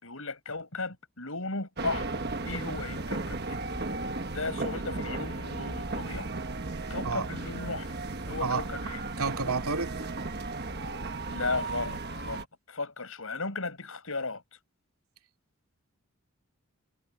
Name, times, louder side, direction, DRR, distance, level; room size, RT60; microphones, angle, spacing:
voice 1, 0.0-3.6 4.3-6.3 6.9-7.9 8.3-9.0 11.3-14.4, left 3 dB, 70° left, 5.1 m, -36 dB
sound 1, 1.8-12.4, right 3 dB, 45° right, 1.3 m, -35 dB
voice 2, 9.2-10.0, right 4 dB, 75° right, 2.5 m, -30 dB
head